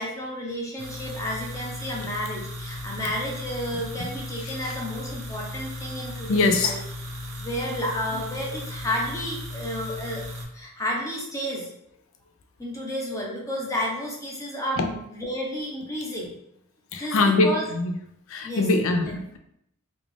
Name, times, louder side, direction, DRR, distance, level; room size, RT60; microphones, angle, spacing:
voice 1, 0.0-6.8 7.4-10.2 10.5-11.7 12.6-16.4 17.0-17.7 18.4-19.2, equal, 15° left, -2 dB, 0.7 m, -31 dB
sound 1, 0.8-10.4, left 1 dB, 60° right, 1.0 m, -36 dB
voice 2, 6.3-6.7 16.9-17.9 18.3-19.4, left 3 dB, 60° left, 6 dB, 0.4 m, -22 dB
3.4 x 2.4 x 3.4 m, 0.76 s
head